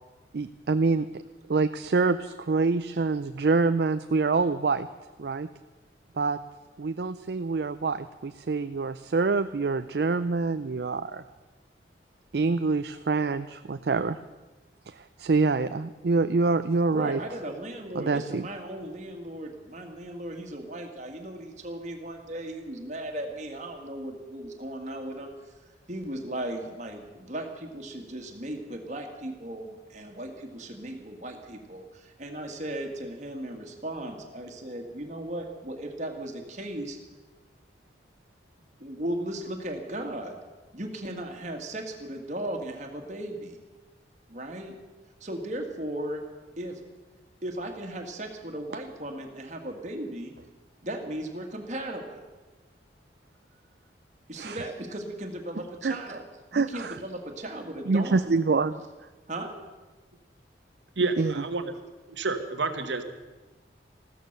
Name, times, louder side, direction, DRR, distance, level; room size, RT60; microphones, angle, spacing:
voice 1, 0.3-1.1 1.5-4.9 5.2-5.5 6.2-6.4 6.8-11.2 12.3-14.2 14.9-17.2 17.9-18.4 54.4-54.6 55.8-56.0 56.5-57.0 57.9-58.8 61.2-61.3, right 4 dB, 65° right, 11 dB, 0.4 m, -26 dB
voice 2, 16.9-25.5 25.9-37.0 38.8-40.4 40.7-43.6 44.3-44.8 45.2-46.2 46.6-46.8 47.4-50.3 50.8-52.3 54.3-56.3 56.5-58.4 59.3-59.5, right 1 dB, 40° right, 3 dB, 1.9 m, -36 dB
voice 3, 61.0-61.7 62.1-63.0, right 3 dB, 85° right, 7 dB, 1.2 m, -29 dB
14.5 x 13.5 x 6.7 m, 1.2 s
head